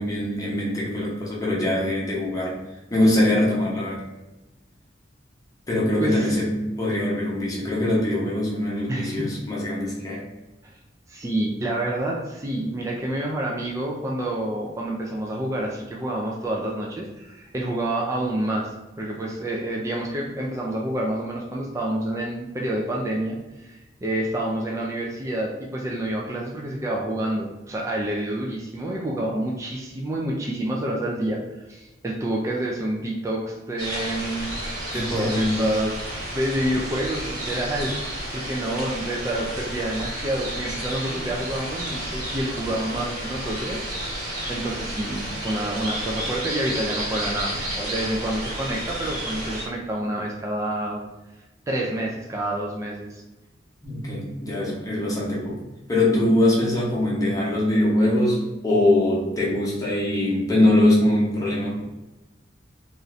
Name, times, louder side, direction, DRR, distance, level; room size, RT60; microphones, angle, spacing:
voice 1, 0.0-2.6 2.9-4.0 5.7-10.3 34.9-35.7 53.8-55.6 55.9-61.8, left 1 dB, 20° left, -5 dB, 0.8 m, -22 dB
voice 2, 6.0-6.4 8.9-9.3 10.6-10.7 11.1-18.7 19.0-31.4 31.7-34.5 34.9-36.0 36.3-43.8 44.1-44.2 44.5-51.0 51.7-53.2, right 1 dB, 15° right, -2 dB, 0.3 m, -28 dB
sound 1, 33.8-49.6, right 1 dB, 60° right, 1.1 m, -31 dB
2.6 x 2.4 x 3.1 m, 1.0 s
head